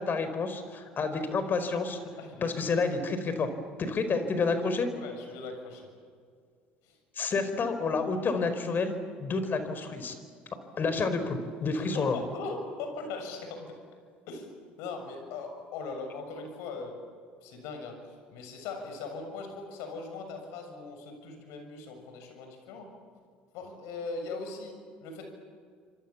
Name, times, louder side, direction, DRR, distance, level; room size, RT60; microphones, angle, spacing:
voice 1, 0.0-2.0 2.4-3.5 3.8-4.9 7.2-10.1 10.8-12.2, left 4 dB, 40° left, 9 dB, 4.7 m, -29 dB
voice 2, 2.1-2.8 3.9-4.0 4.9-5.9 6.8-7.0 11.7-13.8 14.3-14.5 14.8-17.0 17.4-22.9 23.5-25.3, left 3 dB, 65° left, 5 dB, 7.0 m, -40 dB
29.0 x 26.0 x 7.4 m, 2.1 s
hypercardioid pair, 70°, 5 cm